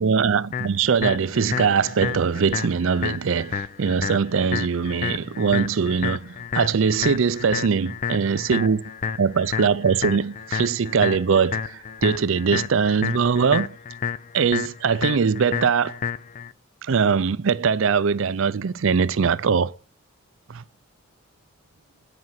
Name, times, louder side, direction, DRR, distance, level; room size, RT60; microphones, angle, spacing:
voice 1, 0.0-8.8 9.2-13.8 14.3-16.0 16.8-19.7 20.5-20.6, right 6 dB, 65° right, 0.5 m, -22 dB
sound 1, 0.5-16.5, left 6 dB, 40° left, 0.4 m, -30 dB
9.7 x 5.3 x 7.7 m
head